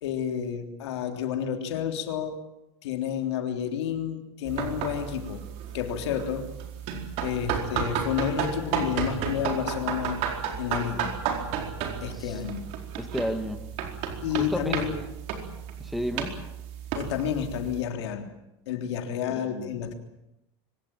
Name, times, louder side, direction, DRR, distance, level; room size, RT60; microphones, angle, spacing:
voice 1, 0.0-2.4 2.8-5.4 5.7-6.5 7.2-10.2 10.6-11.2 12.0-12.7 14.2-15.0 17.0-18.3 18.7-19.9, left 8 dB, 85° left, 5 dB, 3.4 m, -30 dB
sound 1, 4.5-17.8, right 7 dB, 55° right, 4.5 m, -33 dB
voice 2, 13.0-13.6 14.4-14.7 15.8-16.4 19.3-19.7, equal, ahead, 6 dB, 1.8 m, -32 dB
24.5 x 17.5 x 9.1 m, 0.90 s
supercardioid pair, 140°, 14 cm